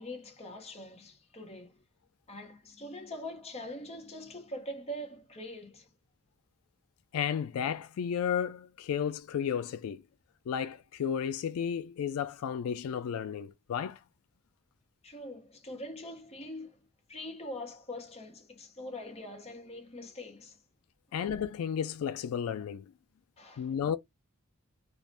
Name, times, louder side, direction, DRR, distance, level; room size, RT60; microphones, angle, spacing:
voice 1, 0.0-1.8 2.3-5.9 15.0-16.8 17.1-20.6 23.4-23.7, left 1 dB, 30° left, 0.7 m, -43 dB
voice 2, 7.1-10.0 10.5-14.0 21.1-22.9 23.6-24.0, left 8 dB, 85° left, 0.3 m, -33 dB
2.5 x 2.1 x 3.2 m
head